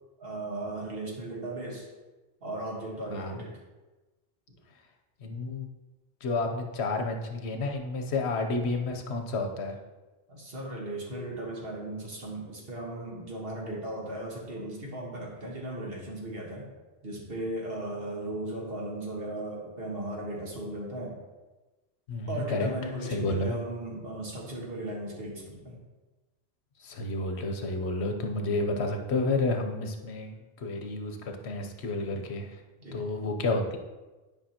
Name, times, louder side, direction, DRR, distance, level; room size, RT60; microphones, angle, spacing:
voice 1, 0.2-1.9 2.4-3.6 4.5-4.6 10.3-16.7 17.0-21.1 22.3-25.8 32.8-33.1, right 1 dB, 60° right, -2 dB, 1.7 m, -36 dB
voice 2, 5.2-5.7 6.2-9.8 22.1-22.7 23.0-23.6 26.8-32.5 32.9-33.8, left 2 dB, 75° left, 4 dB, 1.1 m, -30 dB
10.5 x 5.2 x 2.9 m, 1.2 s
omnidirectional pair, 1.1 m